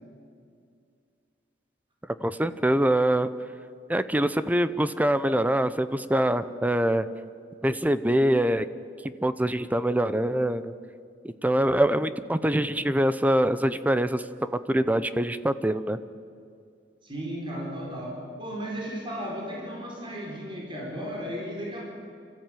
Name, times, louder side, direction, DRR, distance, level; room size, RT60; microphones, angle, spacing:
voice 1, 2.2-3.3 3.9-7.1 7.6-8.7 9.2-10.7 11.2-16.0, right 1 dB, 10° right, 13 dB, 0.6 m, -24 dB
voice 2, 17.0-21.8, equal, 30° right, -1 dB, 4.4 m, -35 dB
26.0 x 14.5 x 9.1 m, 2.3 s
head